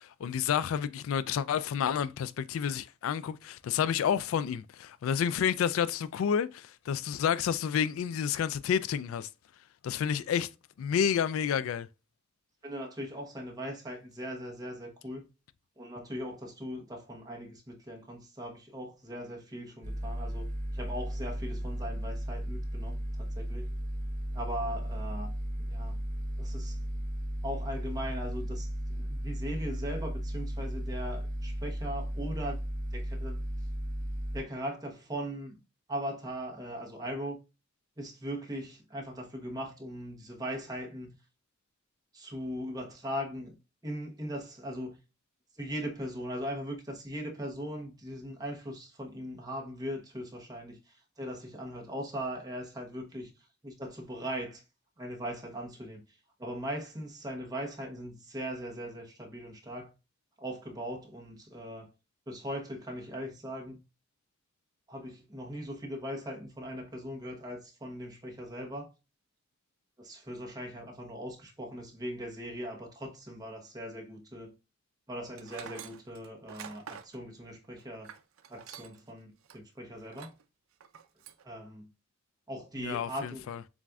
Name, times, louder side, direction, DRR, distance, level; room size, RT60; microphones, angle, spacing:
voice 1, 0.0-9.3 9.8-10.5 10.8-11.9 82.8-83.6, left 8 dB, 80° left, 0.3 m, -30 dB
voice 2, 12.6-15.3 15.8-23.8 24.3-25.3 25.6-26.0 26.4-26.8 27.4-32.6 32.9-33.4 34.3-35.6 35.9-37.4 38.0-41.2 42.1-43.6 43.8-45.0 45.6-53.3 53.6-54.6 55.0-56.0 56.4-59.9 60.4-61.9 62.3-63.8 64.9-68.9 70.0-74.5 75.1-78.1 78.5-80.3 81.4-81.9 82.5-83.5, equal, 20° right, 1.0 m, -39 dB
sound 1, 19.8-34.4, equal, 35° right, 0.8 m, -35 dB
Tools, 75.3-79.1 79.4-79.6 80.1-80.4 80.8-81.4, right 8 dB, 85° right, 0.5 m, -47 dB
7.2 x 2.5 x 2.3 m
head